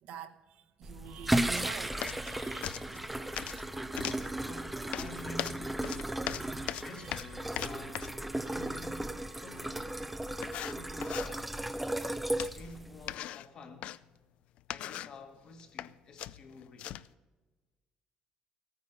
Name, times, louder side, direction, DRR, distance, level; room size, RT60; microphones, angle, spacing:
voice 1, 0.0-3.2 4.0-4.1 6.1-6.7 7.0-7.1 8.3-8.6, right 7 dB, 65° right, 1.1 m, -47 dB
sound 1, 0.8-13.2, right 1 dB, 5° right, 0.4 m, -35 dB
Organ, 1.0-11.9, right 7 dB, 80° right, 1.9 m, -57 dB
sound 2, 2.0-2.3 2.6-3.6 3.9-4.3 4.9-8.2 9.7-9.8 10.4-11.3 12.4-12.7 13.1-14.0 14.6-15.2 15.6-15.9 16.2-17.1, left 12 dB, 55° left, 0.4 m, -39 dB
voice 2, 4.4-5.9 6.3-10.0 10.5-11.6 12.5-14.0 14.7-17.0, left 3 dB, 35° left, 1.6 m, -50 dB
15.5 x 9.6 x 5.3 m
cardioid pair, 180°, 2 cm